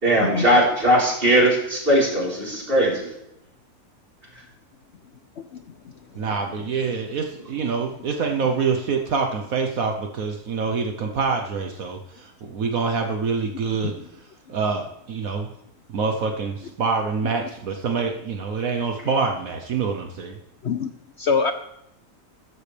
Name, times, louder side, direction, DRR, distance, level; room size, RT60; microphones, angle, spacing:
voice 1, 0.0-3.1, equal, 35° right, -4 dB, 4.5 m, -19 dB
voice 2, 6.2-13.9 14.5-15.5 15.9-20.4, right 5 dB, 65° right, 4 dB, 1.4 m, -26 dB
voice 3, 21.2-21.5, left 5 dB, 55° left, 8 dB, 0.9 m, -24 dB
14.5 x 14.0 x 3.4 m, 0.82 s
omnidirectional pair, 1.6 m